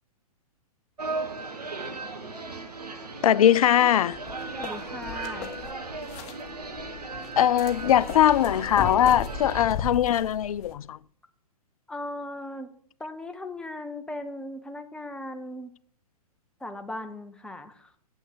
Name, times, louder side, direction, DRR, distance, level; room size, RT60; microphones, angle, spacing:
sound 1, 1.0-9.6, right 3 dB, 90° right, 1.4 m, -37 dB
voice 1, 3.2-4.2 7.4-11.0, left 11 dB, 65° left, 0.4 m, -21 dB
sound 2, 4.1-10.7, left 6 dB, 35° left, 1.3 m, -37 dB
voice 2, 4.6-5.5 11.9-12.7 13.0-15.7 16.6-17.9, left 1 dB, 5° left, 0.9 m, -38 dB
7.9 x 6.4 x 7.9 m
figure-of-eight pair, 115°, 20 cm